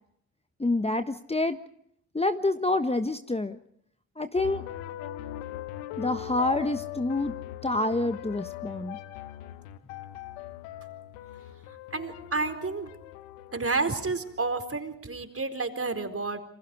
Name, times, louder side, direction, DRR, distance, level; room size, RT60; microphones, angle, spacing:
voice 1, 0.6-1.6 2.1-3.6 4.2-4.6 6.0-7.3 7.6-9.0, left 2 dB, 15° left, 9 dB, 1.4 m, -27 dB
sound 1, 4.4-14.6, left 13 dB, 90° left, 1.1 m, -41 dB
voice 2, 11.9-12.9 13.5-16.4, right 3 dB, 35° right, 7 dB, 4.5 m, -30 dB
28.0 x 26.0 x 4.9 m, 0.69 s
hypercardioid pair, 45°, 40 cm